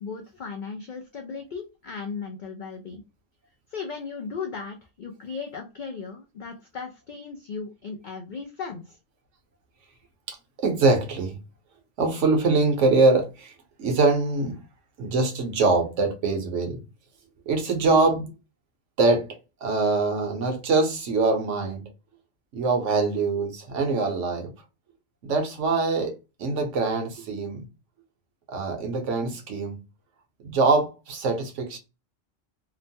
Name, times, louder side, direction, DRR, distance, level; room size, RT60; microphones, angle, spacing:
voice 1, 0.0-3.0 3.7-9.0, left 5 dB, 70° left, 0.4 m, -36 dB
voice 2, 10.6-11.3 12.0-13.5 13.8-14.6 15.0-16.8 17.5-18.3 19.0-19.3 19.6-21.9 22.5-24.5 25.2-26.1 26.4-27.7 28.5-29.8 30.4-31.8, right 3 dB, 70° right, 1.1 m, -23 dB
2.9 x 2.1 x 2.7 m
omnidirectional pair, 1.3 m